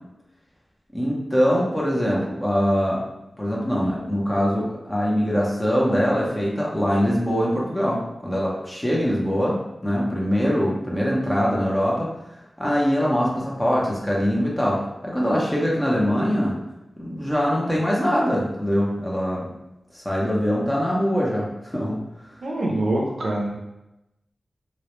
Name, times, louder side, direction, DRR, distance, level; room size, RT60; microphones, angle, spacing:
voice 1, 0.9-3.0 3.4-12.1 12.6-16.6 17.0-19.5 19.9-22.0, equal, 15° left, -4 dB, 0.6 m, -23 dB
voice 2, 22.4-23.6, right 1 dB, 75° right, -2 dB, 0.4 m, -24 dB
2.1 x 2.0 x 2.9 m, 0.93 s
wide cardioid pair, 100°, 0 cm